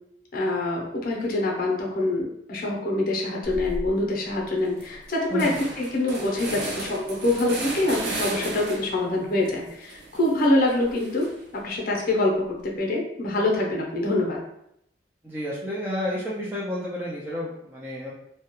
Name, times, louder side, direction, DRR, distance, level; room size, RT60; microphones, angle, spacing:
voice 1, 0.3-14.4, left 2 dB, 55° left, -1 dB, 0.6 m, -25 dB
sound 1, 3.4-3.9 4.3-4.4 4.6-9.1 9.4-11.6, right 2 dB, 70° right, 0.6 m, -35 dB
voice 2, 15.2-18.1, equal, 10° right, -7 dB, 0.4 m, -30 dB
2.3 x 2.1 x 2.8 m, 0.75 s
head